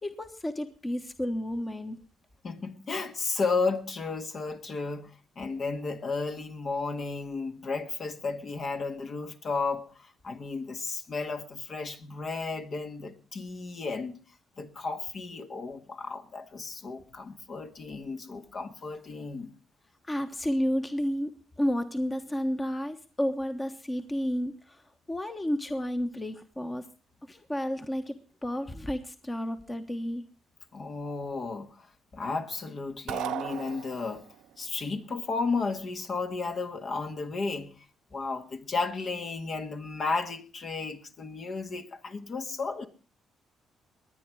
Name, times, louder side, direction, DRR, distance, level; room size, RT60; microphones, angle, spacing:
voice 1, 0.0-2.0 20.1-24.8 25.1-26.9 27.3-30.2, equal, 20° left, 1.3 m, -31 dB
voice 2, 2.4-14.2 14.6-19.5 30.7-34.3 34.6-37.7 38.1-42.9, left 4 dB, 50° left, 1.8 m, -33 dB
sound 1, 33.1-34.4, right 12 dB, 80° right, 0.6 m, -35 dB
21.5 x 9.5 x 4.8 m
supercardioid pair, 70°, 0 cm